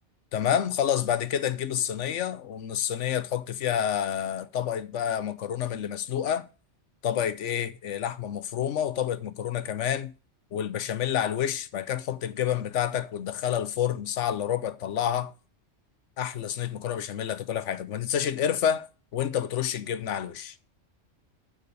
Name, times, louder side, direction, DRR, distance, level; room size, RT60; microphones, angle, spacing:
voice 1, 0.3-6.5 7.0-10.1 10.5-15.3 16.2-20.5, left 9 dB, 80° left, 1.1 m, -29 dB
6.6 x 6.5 x 6.8 m
omnidirectional pair, 1.2 m